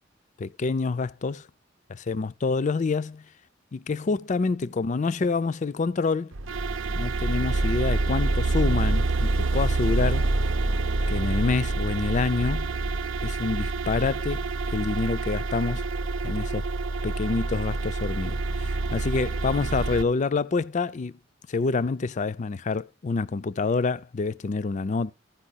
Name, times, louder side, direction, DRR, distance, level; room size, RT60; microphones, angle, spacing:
voice 1, 0.4-1.5 1.9-3.2 3.7-6.3 6.9-10.3 11.1-12.7 13.2-14.4 14.7-15.8 16.2-16.6 17.0-21.1 21.5-25.1, left 4 dB, 40° left, 0.4 m, -27 dB
sound 1, 6.3-20.0, right 2 dB, 85° right, 0.7 m, -27 dB
15.0 x 5.4 x 4.0 m
head